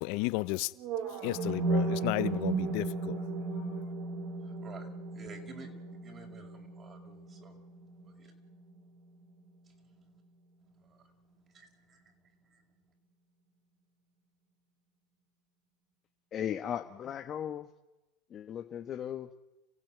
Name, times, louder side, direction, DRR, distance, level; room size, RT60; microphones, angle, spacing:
voice 1, 0.0-0.7 1.2-3.2, left 23 dB, 65° left, 0.8 m, -33 dB
sound 1, 0.8-8.8, right 3 dB, 60° right, 2.6 m, -35 dB
voice 2, 5.2-5.7 6.0-7.5 8.2-8.3 10.9-11.0 11.5-12.0 12.5-12.6, right 4 dB, 35° right, 5.4 m, -51 dB
voice 3, 16.3-17.7 18.3-19.3, left 9 dB, 40° left, 1.3 m, -37 dB
28.5 x 15.5 x 9.3 m
hypercardioid pair, 100°, 0 cm